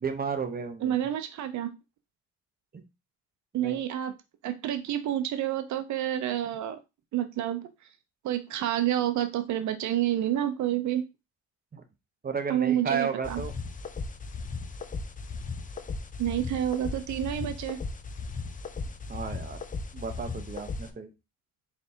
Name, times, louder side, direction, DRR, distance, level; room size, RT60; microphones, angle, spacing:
voice 1, 0.0-0.9 2.7-2.8 3.5-3.8 11.7-11.8 12.2-13.5 19.1-19.6 19.9-21.1, right 6 dB, 30° right, 7 dB, 0.9 m, -33 dB
voice 2, 0.8-1.7 3.5-4.1 4.4-6.8 7.1-7.6 8.2-11.0 12.5-13.4 16.2-17.8, right 11 dB, 70° right, 9 dB, 0.7 m, -29 dB
sound 1, 13.2-20.9, left 4 dB, 25° left, 0.5 m, -37 dB
4.0 x 3.4 x 2.8 m, 0.26 s
cardioid pair, 90°, 30 cm